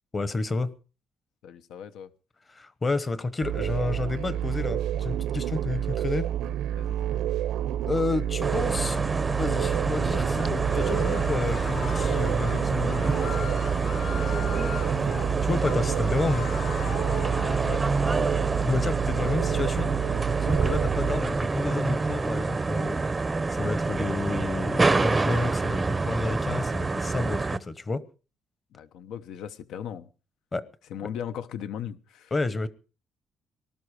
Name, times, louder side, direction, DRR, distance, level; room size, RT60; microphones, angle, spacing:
voice 1, 0.1-0.8 2.5-6.3 7.8-9.0 9.4-13.6 15.4-16.5 18.6-19.9 20.4-23.0 23.5-28.0 30.5-30.6 31.0-31.1 32.3-32.7, left 3 dB, 20° left, 1.0 m, -30 dB
voice 2, 1.4-2.1 6.7-7.2 13.9-14.6 17.6-17.9 28.7-30.1 30.9-32.3, left 9 dB, 80° left, 1.0 m, -38 dB
sound 1, 3.4-21.2, right 10 dB, 80° right, 0.8 m, -29 dB
sound 2, 8.4-27.6, right 3 dB, 15° right, 0.6 m, -27 dB
sound 3, 10.3-17.7, left 8 dB, 60° left, 3.8 m, -40 dB
19.0 x 12.5 x 4.9 m
cardioid pair, 175°, 0 cm